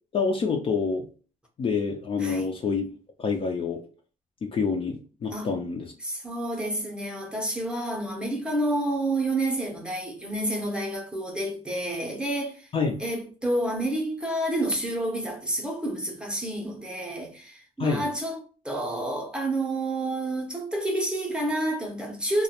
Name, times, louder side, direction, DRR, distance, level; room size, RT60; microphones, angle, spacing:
voice 1, 0.1-1.1 1.6-2.9 3.2-3.8 4.4-5.9 12.7-13.0 17.8-18.1, left 5 dB, 35° left, 0.4 m, -27 dB
voice 2, 5.3-5.6 6.0-12.7 13.0-22.4, right 1 dB, 5° right, 0.6 m, -29 dB
2.4 x 2.1 x 2.8 m
cardioid pair, 130°, 16 cm